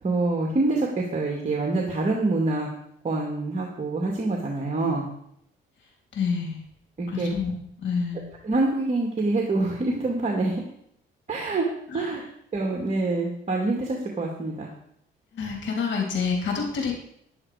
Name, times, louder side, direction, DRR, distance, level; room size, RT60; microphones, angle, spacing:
voice 1, 0.0-2.7 3.0-5.1 7.0-7.3 8.4-10.6 11.3-11.7 11.9-12.2 12.5-14.7, right 2 dB, 35° right, 0 dB, 2.3 m, -26 dB
voice 2, 6.1-6.6 7.1-7.5 7.8-8.2 11.9-12.0 15.3-16.9, left 5 dB, 65° left, 1 dB, 3.5 m, -27 dB
10.5 x 9.7 x 5.0 m, 0.71 s
cardioid pair, 90°, 20 cm